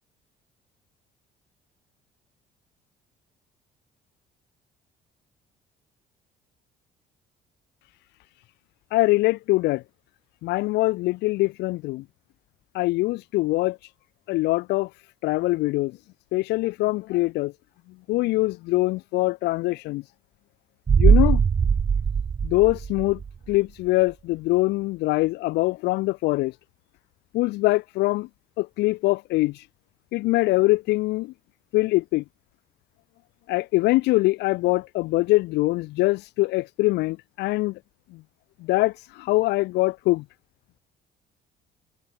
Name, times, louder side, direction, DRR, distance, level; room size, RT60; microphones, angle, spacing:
voice 1, 8.9-9.8 10.4-12.0 12.7-13.9 14.3-14.9 15.2-16.0 16.3-17.5 18.1-20.0 21.0-21.4 22.4-23.2 23.5-26.6 27.3-28.3 28.6-29.7 30.1-31.3 31.7-32.2 33.5-37.8 38.1-38.2 38.6-40.2, left 20 dB, 90° left, 1.2 m, -23 dB
sound 1, 20.9-23.6 23.9-24.0, right 6 dB, 25° right, 0.3 m, -20 dB
cardioid pair, 110°, 17 cm